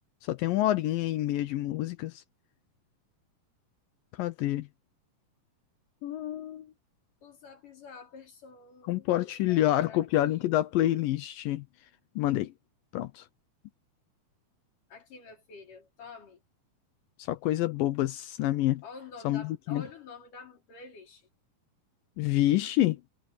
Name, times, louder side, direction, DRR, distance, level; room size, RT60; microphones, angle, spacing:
voice 1, 0.2-2.2 4.2-4.7 6.0-6.7 8.9-11.6 12.2-12.5 12.9-13.3 17.2-18.8 19.2-19.8 22.2-23.0, left 14 dB, 75° left, 2.3 m, -27 dB
voice 2, 7.2-10.0 10.3-10.5 14.9-16.4 18.8-21.3, left 5 dB, 60° left, 6.3 m, -48 dB
omnidirectional pair, 4.3 m